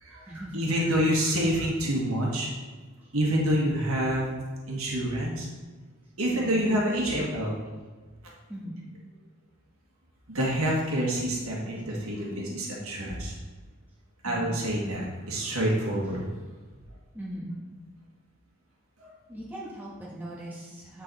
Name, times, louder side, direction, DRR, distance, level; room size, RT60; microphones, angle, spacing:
voice 1, 0.0-2.5 3.1-4.2 4.7-5.5 6.2-7.6 10.3-13.3 14.2-16.2 19.0-19.1, equal, 80° right, -3 dB, 1.5 m, -27 dB
voice 2, 3.0-3.6 6.3-6.8 8.5-8.9 14.2-14.6 17.1-17.6 19.3-21.0, right 1 dB, 10° right, -6 dB, 1.2 m, -40 dB
8.9 x 3.9 x 4.0 m, 1.4 s
head